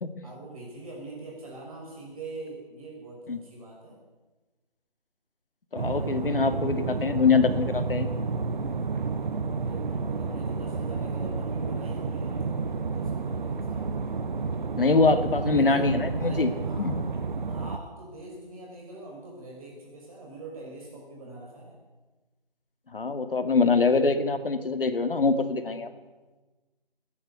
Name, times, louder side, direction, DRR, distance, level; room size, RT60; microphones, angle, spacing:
voice 1, 0.2-4.0 9.6-14.0 15.4-15.9 16.2-17.0 17.5-21.8, right 2 dB, 35° right, -2 dB, 5.7 m, -43 dB
voice 2, 5.7-8.1 14.8-16.5 16.8-17.0 22.9-25.9, left 4 dB, 65° left, 8 dB, 2.4 m, -24 dB
sound 1, 5.8-17.8, right 4 dB, 50° right, 1.3 m, -30 dB
29.5 x 11.0 x 8.2 m, 1.2 s
figure-of-eight pair, 160°, 29 cm